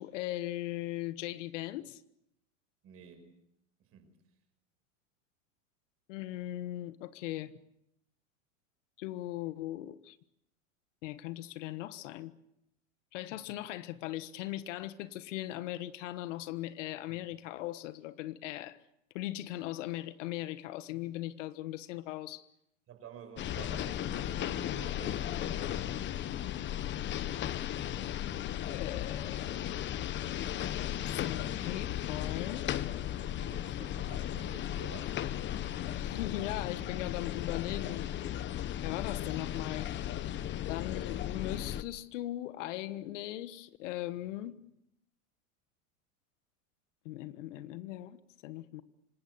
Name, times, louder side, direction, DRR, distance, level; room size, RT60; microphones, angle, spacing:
voice 1, 0.0-2.0 6.1-7.6 9.0-10.2 11.0-12.3 13.1-18.8 19.1-22.5 28.7-29.7 31.1-32.7 35.9-38.1 38.8-39.9 40.7-44.6 47.0-48.8, left 15 dB, 70° left, 1.4 m, -39 dB
voice 2, 2.8-3.4 3.9-4.1 22.9-25.9 33.1-35.2, right 6 dB, 35° right, 5.4 m, -51 dB
sound 1, 23.4-41.8, left 11 dB, 30° left, 1.1 m, -36 dB
26.0 x 19.5 x 8.0 m
supercardioid pair, 130°, 39 cm